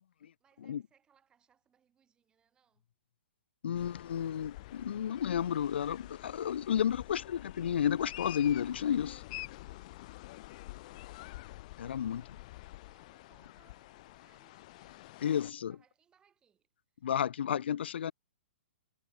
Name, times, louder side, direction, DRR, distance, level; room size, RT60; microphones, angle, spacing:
voice 1, 0.0-2.9 10.5-11.5 11.9-16.7 16.9-17.1, right 8 dB, 15° right, 7.6 m, -72 dB
voice 2, 3.6-9.2 11.8-12.4 15.2-15.8 17.0-18.1, left 9 dB, 65° left, 0.8 m, -32 dB
sound 1, 3.7-15.5, left 18 dB, 40° left, 1.2 m, -48 dB
hypercardioid pair, 150°, 6 cm